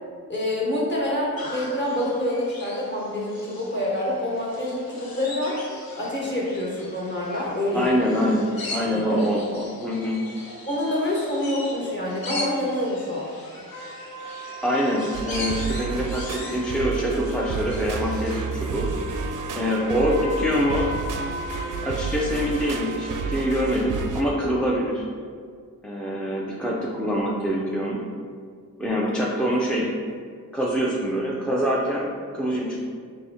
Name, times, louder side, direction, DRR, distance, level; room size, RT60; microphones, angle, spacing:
voice 1, 0.3-5.6 6.0-8.0 8.9-9.2 10.7-13.3, left 1 dB, 30° left, -5 dB, 1.2 m, -26 dB
sound 1, 1.4-18.4, left 2 dB, 75° left, 0.8 m, -39 dB
voice 2, 7.7-10.2 14.2-14.4 14.6-18.9 19.6-20.9 21.8-25.1 25.8-28.0 28.8-29.9 30.5-32.9, equal, 5° left, -4 dB, 0.4 m, -25 dB
sound 2, 13.7-23.6, right 1 dB, 50° left, 1.0 m, -38 dB
sound 3, 15.1-24.2, right 4 dB, 60° right, 0.4 m, -31 dB
4.1 x 2.6 x 3.4 m, 2.1 s
cardioid pair, 80°, 36 cm